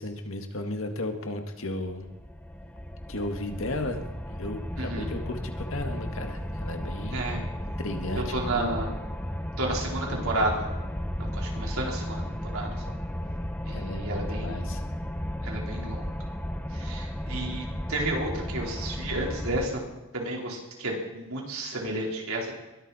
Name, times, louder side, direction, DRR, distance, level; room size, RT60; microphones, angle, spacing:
voice 1, 0.0-2.1 3.1-7.3 7.8-8.7 13.7-14.8, left 1 dB, 70° left, 5 dB, 1.8 m, -34 dB
sound 1, 2.0-19.7, equal, 10° left, 0.8 m, -34 dB
voice 2, 4.8-5.1 7.1-7.4 8.1-8.9 9.6-10.7 11.3-12.8 13.6-14.7 15.4-16.2 16.7-19.8 20.1-22.5, right 1 dB, 80° right, -2 dB, 4.2 m, -32 dB
21.5 x 13.0 x 4.3 m, 1.1 s
head